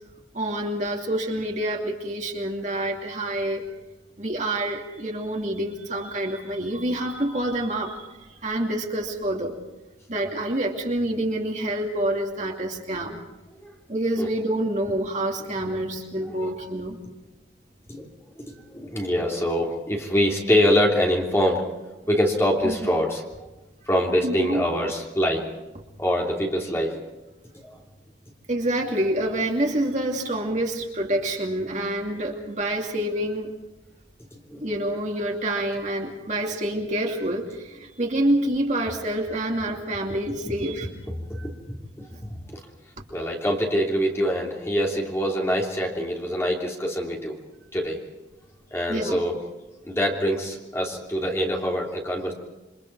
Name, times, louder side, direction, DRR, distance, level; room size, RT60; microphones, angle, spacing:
voice 1, 0.3-3.6 4.2-8.1 8.4-9.6 10.1-13.2 13.9-17.0 22.6-22.9 24.2-24.6 28.5-33.5 34.6-40.9 41.3-41.5 48.9-49.2, right 1 dB, 40° right, 1 dB, 2.6 m, -27 dB
voice 2, 18.3-21.7 22.1-23.2 23.9-25.5 26.0-27.1 27.6-27.8 34.5-34.7 40.4-40.5 41.1-42.1 43.1-47.3 47.7-48.0 48.7-49.3 49.9-52.3, equal, 15° left, -1 dB, 3.1 m, -24 dB
28.0 x 24.5 x 4.8 m, 1.1 s
head